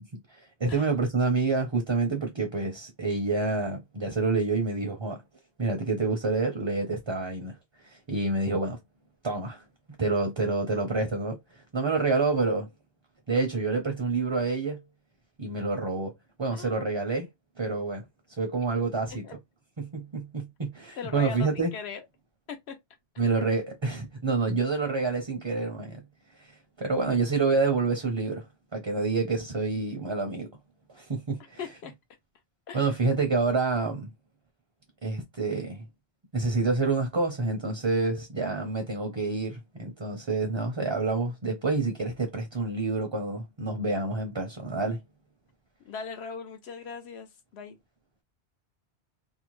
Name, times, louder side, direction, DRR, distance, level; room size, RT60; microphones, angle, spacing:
voice 1, 0.3-5.2 5.6-7.6 7.8-8.8 9.2-9.6 10.0-12.7 13.3-14.8 15.4-16.1 16.4-17.3 17.6-18.0 18.4-19.3 19.8-21.7 23.2-26.0 26.4-28.4 28.7-30.5 30.9-31.6 32.7-34.1 35.0-35.8 36.3-45.0, right 3 dB, 35° right, 0.5 m, -28 dB
voice 2, 16.5-16.9 19.2-19.4 21.0-22.0 22.5-22.8 31.6-31.9 32.7-32.9 45.8-47.8, left 6 dB, 70° left, 0.9 m, -39 dB
2.7 x 2.1 x 3.0 m
omnidirectional pair, 1.1 m